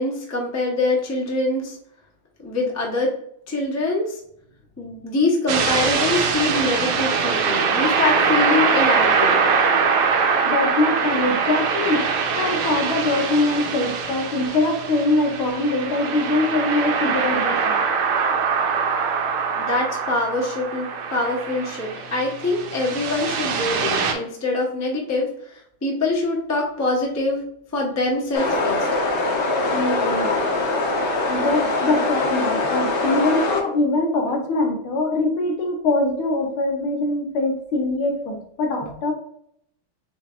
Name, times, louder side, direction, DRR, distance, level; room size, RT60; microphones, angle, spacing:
voice 1, 0.0-1.8 2.4-3.1 3.5-4.2 4.8-9.4 19.6-28.9 30.2-30.5 31.8-31.9, left 2 dB, 15° left, -2 dB, 0.5 m, -24 dB
sound 1, 5.5-24.1, right 5 dB, 90° right, 1.6 m, -23 dB
voice 2, 10.4-12.1 12.4-17.9 29.7-30.4 31.3-39.1, left 2 dB, 75° left, 4 dB, 1.7 m, -23 dB
sound 2, 28.3-33.6, left 2 dB, 55° left, 1.6 m, -23 dB
6.9 x 2.7 x 2.4 m, 0.70 s
omnidirectional pair, 2.4 m